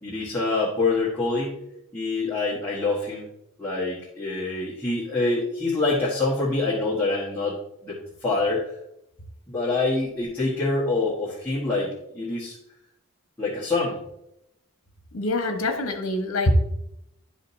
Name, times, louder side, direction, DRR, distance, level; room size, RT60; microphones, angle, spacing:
voice 1, 0.0-1.6 1.9-3.2 3.6-7.6 7.8-8.7 9.5-12.6 13.4-14.0, left 3 dB, 10° left, -9 dB, 1.5 m, -26 dB
voice 2, 15.1-16.5, left 1 dB, 65° left, 5 dB, 1.2 m, -24 dB
11.5 x 5.1 x 2.8 m, 0.82 s
head